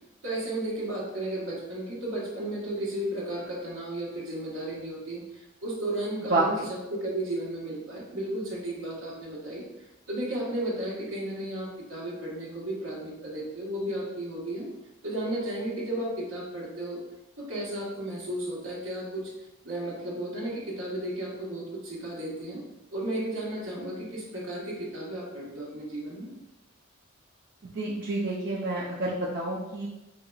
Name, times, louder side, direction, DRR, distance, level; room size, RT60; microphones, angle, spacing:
voice 1, 0.2-6.6 6.9-9.6 10.1-14.7 15.0-17.0 17.4-19.3 19.6-22.6 22.9-26.3, right 1 dB, 75° right, -4 dB, 1.3 m, -34 dB
voice 2, 6.3-6.7 27.8-29.9, right 2 dB, 45° right, -5 dB, 0.5 m, -28 dB
5.5 x 2.8 x 2.3 m, 0.97 s
head